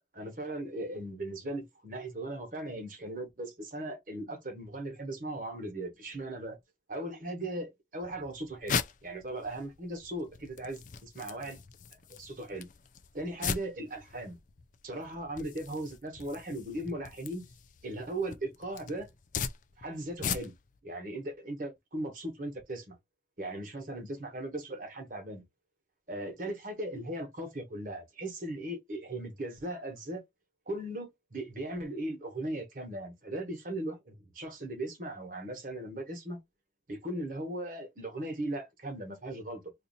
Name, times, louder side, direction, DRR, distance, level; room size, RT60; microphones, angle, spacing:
voice 1, 0.1-6.6 6.9-11.6 12.2-12.7 13.1-14.4 14.8-17.4 17.8-19.1 19.8-20.5 20.8-23.0 23.4-25.4 26.1-30.2 30.7-36.4 36.9-39.7, right 1 dB, 45° right, 1.3 m, -38 dB
sound 1, 8.0-20.8, left 6 dB, 45° left, 0.4 m, -40 dB
2.7 x 2.6 x 4.0 m
head